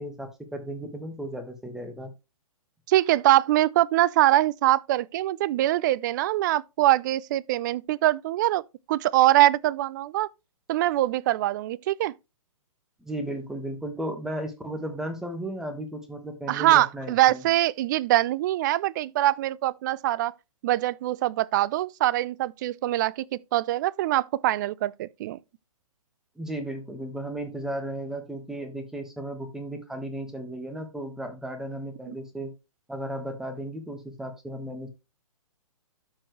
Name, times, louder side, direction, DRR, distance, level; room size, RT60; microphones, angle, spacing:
voice 1, 0.0-2.1 13.0-17.4 26.4-32.5 32.9-34.9, right 1 dB, 5° right, 1.3 m, -35 dB
voice 2, 2.9-8.6 8.9-10.3 10.7-12.1 16.5-20.3 20.6-25.4 32.1-32.2, right 15 dB, 35° right, 0.4 m, -23 dB
13.0 x 4.6 x 3.1 m
hypercardioid pair, 130°, 19 cm